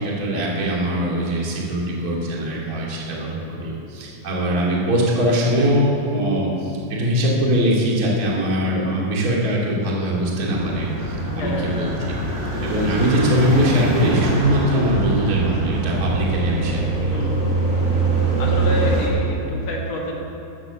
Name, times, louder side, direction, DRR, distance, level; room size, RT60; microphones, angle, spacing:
voice 1, 0.0-12.2 12.6-17.2, equal, 40° right, -4 dB, 1.2 m, -22 dB
sound 1, 10.5-19.1, right 2 dB, 65° right, 1.0 m, -23 dB
voice 2, 11.3-11.9 17.0-17.7 18.4-20.1, left 1 dB, 55° left, -2 dB, 1.9 m, -28 dB
14.5 x 10.0 x 6.9 m, 3.0 s
omnidirectional pair, 6.0 m